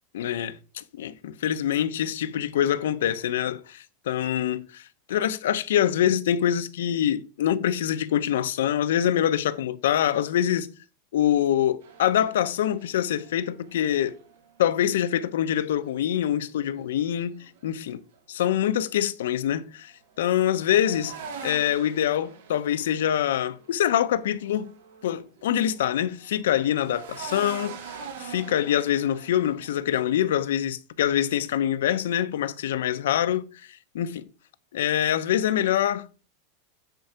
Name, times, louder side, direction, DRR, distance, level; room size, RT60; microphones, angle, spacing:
voice 1, 0.1-10.7 11.1-14.2 14.6-17.3 17.6-18.0 18.3-21.2 21.4-24.7 25.0-33.5 33.9-34.3 34.7-36.1, left 10 dB, 85° left, 0.8 m, -25 dB
sound 1, 11.8-14.7 15.5-18.2 19.9-25.4 25.7-29.7, right 6 dB, 85° right, 2.4 m, -44 dB
9.3 x 4.7 x 5.8 m
supercardioid pair, 180°, 0 cm